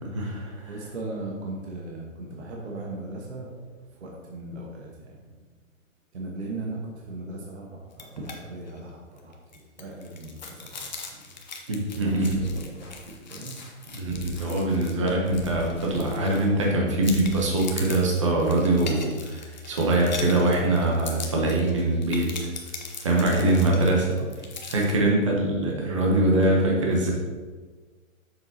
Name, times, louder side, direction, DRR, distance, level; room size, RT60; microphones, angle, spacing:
voice 1, 0.0-0.7 11.7-12.4 13.9-22.3 23.0-24.0 24.7-27.1, right 1 dB, 25° right, -2 dB, 0.8 m, -23 dB
voice 2, 0.7-3.5 4.0-5.4 6.1-11.4 12.0-13.6 14.9-15.1 23.1-24.3 26.1-27.1, right 2 dB, 55° right, -2 dB, 1.3 m, -38 dB
sound 1, 7.9-8.4 8.7-8.8 9.2-16.7 17.0-24.9, left 4 dB, 35° left, 0.6 m, -40 dB
Grime Instrumental Intro, 12.3-13.7 14.0-16.7 17.1-18.1, right 1 dB, 20° left, 1.0 m, -44 dB
7.3 x 7.0 x 2.8 m, 1.4 s
hypercardioid pair, 180°, 41 cm